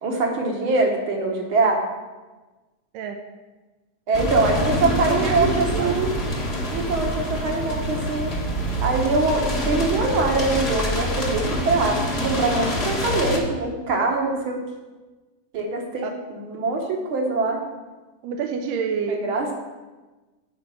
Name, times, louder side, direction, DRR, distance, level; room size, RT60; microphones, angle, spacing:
voice 1, 0.0-1.8 4.1-6.1 6.7-8.3 8.8-14.6 15.5-17.6 19.1-19.5, right 3 dB, 60° right, 1 dB, 1.4 m, -23 dB
sound 1, 4.1-13.4, equal, 35° left, 0.9 m, -26 dB
voice 2, 5.1-6.0 16.0-16.1 18.2-19.5, right 6 dB, 85° right, 4 dB, 2.3 m, -28 dB
9.8 x 5.1 x 6.8 m, 1.2 s
omnidirectional pair, 3.7 m